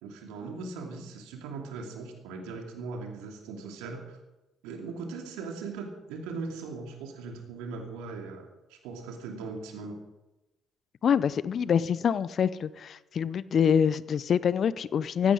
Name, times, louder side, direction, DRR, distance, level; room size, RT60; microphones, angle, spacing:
voice 1, 0.0-4.2 4.6-10.0, right 4 dB, 75° right, 3 dB, 2.7 m, -39 dB
voice 2, 11.0-15.3, left 7 dB, 55° left, 18 dB, 0.7 m, -25 dB
17.5 x 15.5 x 5.0 m, 1.0 s
hypercardioid pair, 45°, 0 cm